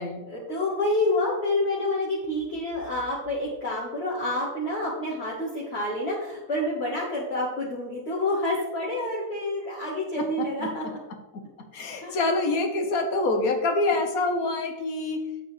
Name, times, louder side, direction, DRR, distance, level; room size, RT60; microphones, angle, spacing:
voice 1, 0.2-11.0 12.0-12.2, left 1 dB, 50° left, -5 dB, 1.8 m, -28 dB
voice 2, 10.2-10.7 11.7-15.2, left 2 dB, 90° left, 5 dB, 1.6 m, -26 dB
9.2 x 8.1 x 3.2 m, 1.0 s
omnidirectional pair, 1.5 m